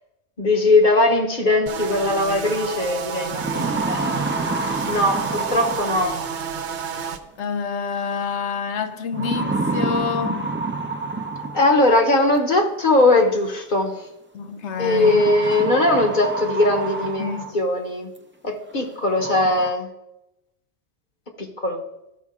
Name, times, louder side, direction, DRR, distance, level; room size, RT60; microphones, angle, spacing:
voice 1, 0.4-4.3 4.6-6.2 11.5-14.1 14.8-18.1 18.4-19.9 21.4-21.8, left 2 dB, 45° left, 1.2 m, -20 dB
sound 1, 1.7-7.2, right 7 dB, 85° right, 1.0 m, -30 dB
sound 2, 2.5-2.6 3.1-6.5 7.9-8.3 9.1-11.9 13.2-13.3 14.8-17.7 18.2-18.3 18.8-18.9 19.2-19.7, right 3 dB, 15° right, 0.5 m, -28 dB
voice 2, 7.4-10.5 14.3-15.2 17.2-17.5, left 6 dB, 85° left, 1.0 m, -27 dB
13.5 x 5.2 x 3.6 m
omnidirectional pair, 1.1 m